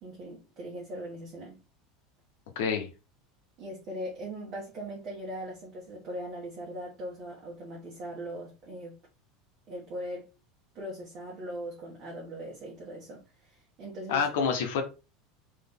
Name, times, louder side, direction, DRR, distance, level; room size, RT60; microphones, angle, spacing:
voice 1, 0.0-1.6 3.6-8.9 9.7-10.2 10.7-13.2 13.8-14.4, right 1 dB, 35° right, 1.3 m, -40 dB
voice 2, 2.6-2.9 14.1-14.8, left 6 dB, 80° left, 1.1 m, -27 dB
3.9 x 3.3 x 3.5 m
supercardioid pair, 165°, 0 cm